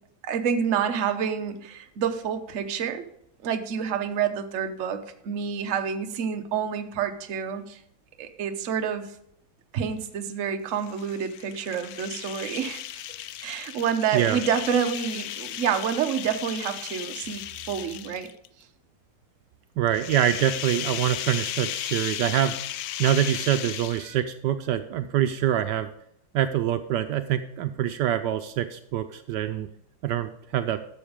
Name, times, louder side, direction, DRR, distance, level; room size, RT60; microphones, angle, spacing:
voice 1, 0.2-3.1 3.4-7.8 8.2-9.1 9.7-12.8 13.4-18.3 24.0-24.2, right 7 dB, 50° right, 6 dB, 1.0 m, -28 dB
sound 1, 10.7-18.5 19.9-24.3, left 12 dB, 75° left, 0.8 m, -35 dB
voice 2, 19.8-22.5 23.0-25.9 26.3-29.7 30.0-30.8, right 11 dB, 75° right, 9 dB, 1.2 m, -25 dB
12.0 x 7.1 x 5.0 m, 0.72 s
omnidirectional pair, 2.0 m